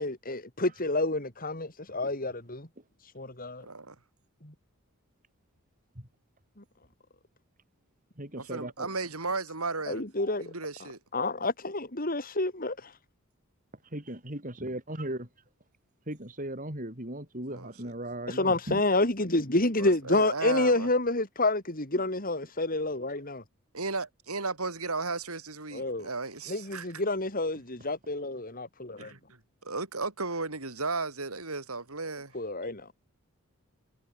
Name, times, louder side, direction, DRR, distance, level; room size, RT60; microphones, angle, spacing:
voice 1, 0.0-2.7 3.0-3.7 4.4-4.5 9.9-10.4 11.1-13.0 18.3-23.4 25.7-26.1 26.5-29.1 32.3-32.9, left 2 dB, 40° left, 4.0 m, -29 dB
voice 2, 3.6-4.0 8.4-10.0 10.4-11.0 17.5-17.9 19.8-20.9 23.7-26.9 29.0-29.2 29.6-32.3, right 3 dB, 80° right, 5.2 m, -34 dB
voice 3, 8.2-8.9 13.9-15.3 16.1-18.8, right 1 dB, 35° right, 7.1 m, -37 dB
head